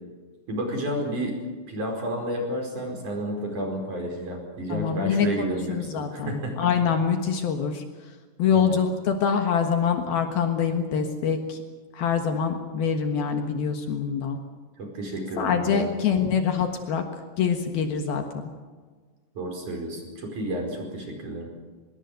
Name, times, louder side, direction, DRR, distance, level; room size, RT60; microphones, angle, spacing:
voice 1, 0.5-1.4 1.7-6.5 8.5-8.8 14.8-16.3 19.4-21.5, right 1 dB, 50° right, 2 dB, 6.0 m, -31 dB
voice 2, 4.7-7.8 8.4-11.6 11.9-14.4 15.4-17.0 17.4-18.4, left 6 dB, 65° left, 5 dB, 3.2 m, -25 dB
25.0 x 21.5 x 6.6 m, 1.4 s
omnidirectional pair, 4.9 m